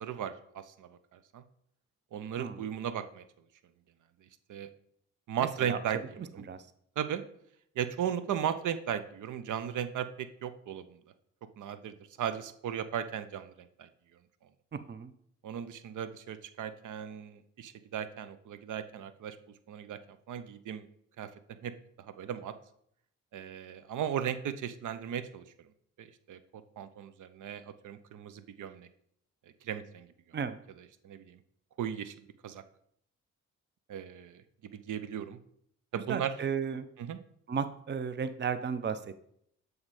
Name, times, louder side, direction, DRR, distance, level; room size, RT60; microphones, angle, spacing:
voice 1, 0.0-1.4 2.1-3.2 4.5-4.7 5.3-6.4 7.0-7.2 7.8-11.0 11.6-13.9 15.4-19.4 19.7-20.9 21.2-21.3 21.6-22.6 23.3-25.7 26.0-28.9 29.6-30.1 31.0-31.4 31.8-32.2 32.4-32.6 33.9-34.4 34.7-35.4 35.9-36.3 37.0-37.2, right 9 dB, 65° right, 12 dB, 0.7 m, -36 dB
voice 2, 6.2-6.6 14.7-15.1 30.3-30.6 36.1-36.9 37.5-39.0, right 6 dB, 35° right, 12 dB, 0.6 m, -34 dB
7.2 x 3.2 x 4.9 m, 0.68 s
supercardioid pair, 45°, 33 cm